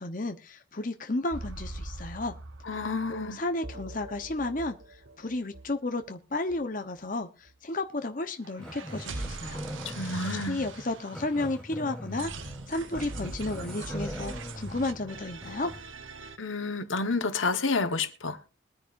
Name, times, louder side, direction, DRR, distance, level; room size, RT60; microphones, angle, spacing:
voice 1, 0.0-2.3 3.1-4.8 5.2-9.6 9.9-10.1 10.5-12.3 12.7-15.7, left 2 dB, 45° left, 1.0 m, -32 dB
sound 1, 1.3-6.1 6.5-6.6 7.0-7.1 7.5-7.6 8.4-11.7 12.1-16.4, right 3 dB, 85° right, 1.1 m, -42 dB
voice 2, 2.6-3.4 9.8-10.6 16.4-18.4, left 3 dB, 85° left, 1.4 m, -30 dB
Growling, 8.6-15.9, equal, 5° left, 1.8 m, -41 dB
21.5 x 9.9 x 2.6 m
head